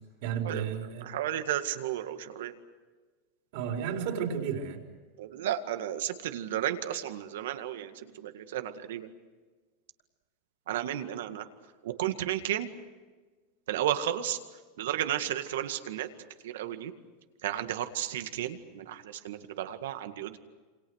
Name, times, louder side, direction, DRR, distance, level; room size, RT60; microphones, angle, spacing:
voice 1, 0.2-1.1 3.5-4.8, right 7 dB, 50° right, 2 dB, 4.3 m, -32 dB
voice 2, 1.0-2.5 5.2-7.9 8.2-9.1 10.7-11.4 11.8-12.7 13.7-14.4 14.8-16.1 16.4-16.9 17.4-20.4, right 11 dB, 80° right, 8 dB, 2.0 m, -33 dB
28.0 x 27.0 x 6.5 m, 1.3 s
supercardioid pair, 175°, 0 cm